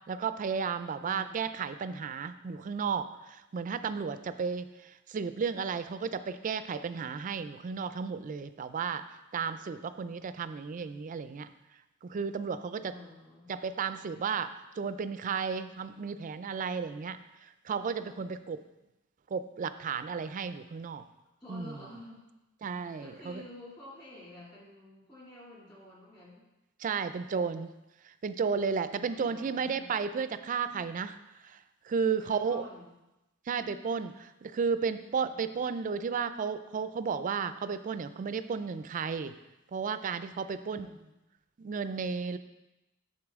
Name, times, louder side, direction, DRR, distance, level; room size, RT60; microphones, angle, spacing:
voice 1, 0.1-9.0 9.3-11.5 12.0-12.9 13.5-18.6 19.3-21.0 21.5-21.7 22.6-23.4 26.8-27.7 28.0-31.2 31.4-31.6 31.8-32.7 33.5-39.3 39.7-40.9 41.6-42.4, right 5 dB, 40° right, 11 dB, 0.3 m, -33 dB
voice 2, 1.0-1.4 12.9-13.5 21.4-22.2 23.0-26.5 29.0-29.9 32.2-32.9 35.2-35.6 40.6-41.1, left 1 dB, 20° left, -5 dB, 2.4 m, -50 dB
8.2 x 6.7 x 3.5 m, 0.97 s
head